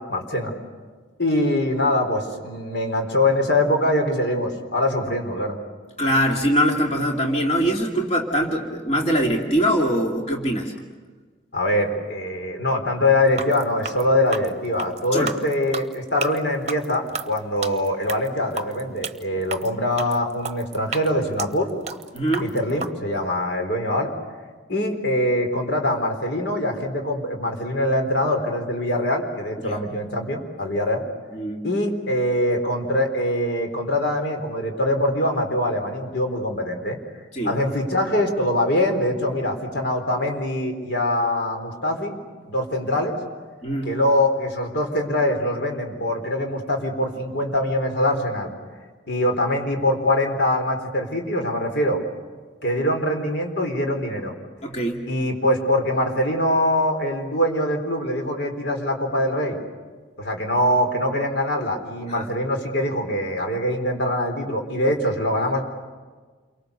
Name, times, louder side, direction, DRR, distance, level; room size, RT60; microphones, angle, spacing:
voice 1, 0.1-0.5 1.2-5.6 11.5-21.7 22.4-24.1 24.7-31.0 31.6-37.0 37.4-42.2 42.4-43.2 43.8-48.5 49.1-52.0 52.6-54.3 55.1-59.6 60.2-65.6, left 1 dB, 65° left, 3 dB, 4.1 m, -23 dB
voice 2, 6.0-10.7 15.1-15.4 22.1-22.5 29.6-29.8 31.3-31.6 37.3-37.6 43.6-44.0 54.6-55.1 62.1-62.3, equal, 35° left, 0 dB, 2.5 m, -23 dB
sound 1, 13.3-22.9, right 4 dB, 35° right, 0.9 m, -33 dB
29.0 x 23.5 x 6.8 m, 1.4 s
head